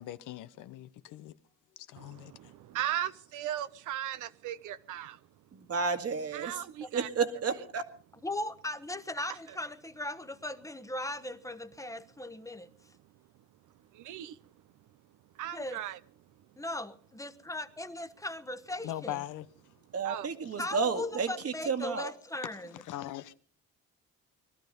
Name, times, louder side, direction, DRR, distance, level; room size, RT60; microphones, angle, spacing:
voice 1, 0.0-1.3 1.9-2.3 18.8-19.5 22.8-23.3, left 13 dB, 90° left, 0.9 m, -40 dB
voice 2, 2.0-5.2 6.3-7.1 9.5-9.6 13.9-14.4 15.3-16.0 20.0-20.3, right 12 dB, 85° right, 0.8 m, -37 dB
voice 3, 5.5-6.6 6.9-7.8 19.9-22.1, right 5 dB, 55° right, 1.9 m, -31 dB
voice 4, 8.2-12.7 15.5-15.8 16.6-19.2 20.6-22.7, left 1 dB, 10° left, 1.1 m, -38 dB
21.0 x 12.5 x 5.3 m
cardioid pair, 90°, 30 cm